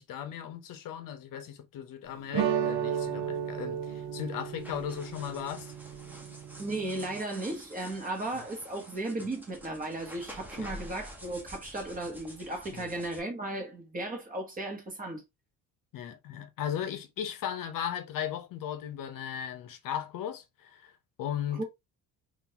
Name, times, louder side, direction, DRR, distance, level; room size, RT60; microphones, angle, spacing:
voice 1, 0.0-5.7 10.6-10.7 12.7-12.9 15.9-21.6, left 9 dB, 65° left, 0.7 m, -37 dB
sound 1, 2.3-7.2, right 8 dB, 90° right, 0.7 m, -34 dB
sound 2, 4.6-13.2, equal, 5° right, 0.8 m, -48 dB
voice 2, 6.6-15.2 21.6-21.7, right 2 dB, 25° right, 1.2 m, -35 dB
3.8 x 2.5 x 2.7 m
cardioid pair, 145°, 36 cm